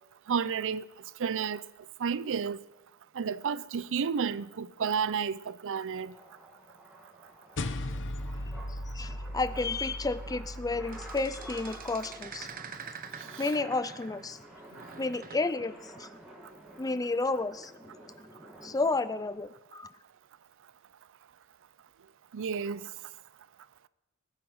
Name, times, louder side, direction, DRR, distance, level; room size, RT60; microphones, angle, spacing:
voice 1, 0.3-0.9 1.2-1.6 2.0-2.6 3.2-6.1 13.3-13.4 22.3-22.9, right 6 dB, 65° right, 0.5 m, -31 dB
sound 1, 4.5-19.3, right 1 dB, 5° right, 2.6 m, -52 dB
sound 2, 7.6-12.2, left 1 dB, 60° left, 1.1 m, -38 dB
voice 2, 8.9-12.5 13.4-14.4 15.0-16.1 16.8-17.9 18.6-19.9, left 3 dB, 15° left, 0.5 m, -31 dB
sound 3, 10.9-14.4 14.7-15.5 17.2-17.5, right 6 dB, 40° right, 1.1 m, -46 dB
19.5 x 9.7 x 6.3 m
head